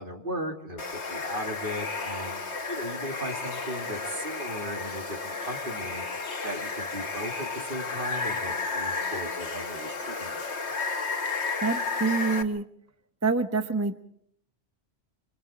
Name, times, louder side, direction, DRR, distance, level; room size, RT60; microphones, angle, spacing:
voice 1, 0.0-10.7, equal, 50° right, 3 dB, 2.7 m, -37 dB
Water, 0.8-12.4, left 4 dB, 85° left, 1.7 m, -32 dB
voice 2, 11.6-12.6 13.2-14.0, right 4 dB, 15° right, 8 dB, 0.9 m, -26 dB
27.0 x 26.0 x 4.3 m, 0.66 s
omnidirectional pair, 1.1 m